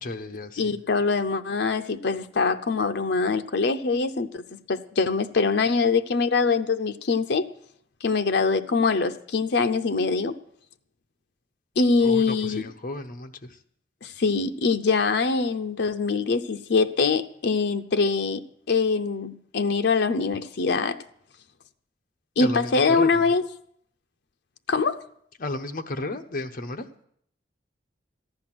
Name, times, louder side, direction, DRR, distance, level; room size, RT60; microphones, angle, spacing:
voice 1, 0.0-0.7 12.0-13.6 22.4-23.3 25.4-26.9, left 2 dB, 50° left, 7 dB, 1.0 m, -33 dB
voice 2, 0.6-7.5 8.0-10.4 11.8-12.6 14.0-18.4 18.7-21.0 22.4-23.4 24.7-25.0, left 4 dB, 70° left, 7 dB, 0.6 m, -23 dB
14.5 x 10.5 x 6.0 m, 0.68 s
head